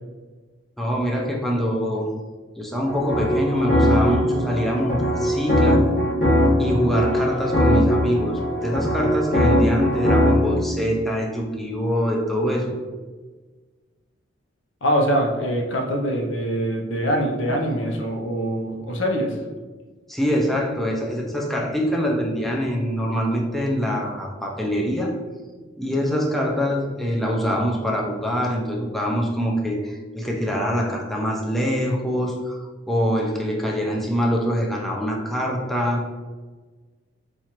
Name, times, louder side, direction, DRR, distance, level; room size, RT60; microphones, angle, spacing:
voice 1, 0.8-2.1 2.6-6.0 6.6-12.8 15.4-15.5 20.1-25.2 25.8-36.1, equal, ahead, -2 dB, 0.3 m, -24 dB
sound 1, 2.8-10.5, equal, 45° left, 1.2 m, -20 dB
voice 2, 14.8-19.4, equal, 85° left, 2 dB, 0.6 m, -23 dB
4.3 x 2.4 x 2.9 m, 1.4 s
head